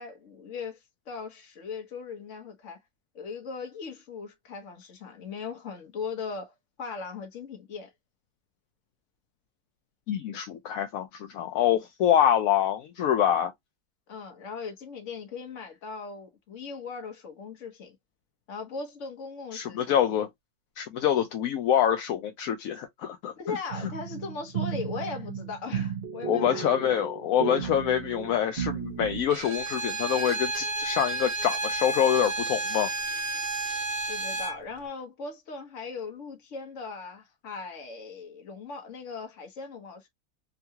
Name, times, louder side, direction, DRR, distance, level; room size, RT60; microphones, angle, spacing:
voice 1, 0.0-2.8 3.1-7.9 14.1-18.0 18.5-20.0 23.4-27.0 34.1-40.1, left 5 dB, 55° left, 1.3 m, -39 dB
voice 2, 10.1-13.5 19.5-20.3 20.8-23.6 26.3-32.9, left 10 dB, 75° left, 1.0 m, -26 dB
sound 1, 23.7-29.2, right 7 dB, 50° right, 0.8 m, -34 dB
Bowed string instrument, 29.3-34.6, right 2 dB, 75° right, 1.3 m, -31 dB
3.7 x 2.3 x 2.7 m
omnidirectional pair, 1.6 m